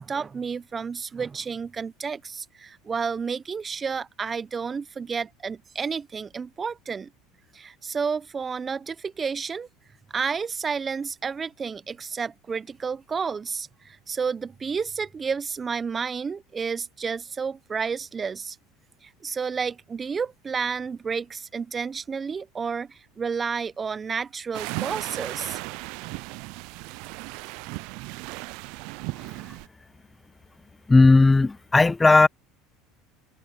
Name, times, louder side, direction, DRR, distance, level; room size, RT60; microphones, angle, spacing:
voice 1, 0.0-7.1 7.5-9.7 10.1-18.6 19.0-25.6, right 5 dB, 25° right, 0.9 m, -31 dB
sound 1, 24.5-29.7, right 27 dB, 70° right, 0.4 m, -36 dB
voice 2, 30.9-32.3, left 3 dB, 15° left, 0.3 m, -16 dB
hypercardioid pair, 90°, 0 cm